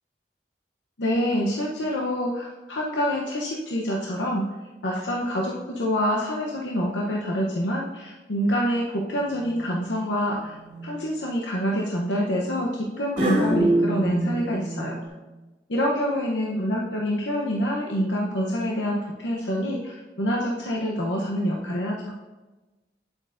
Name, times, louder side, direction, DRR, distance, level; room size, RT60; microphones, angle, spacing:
voice 1, 1.0-4.5 4.8-15.0 15.7-22.1, equal, 85° left, -2 dB, 0.8 m, -26 dB
sound 1, 9.3-9.7 10.4-10.9 13.2-15.1, right 1 dB, 45° right, 2.7 m, -25 dB
8.9 x 7.6 x 2.6 m, 1.2 s
head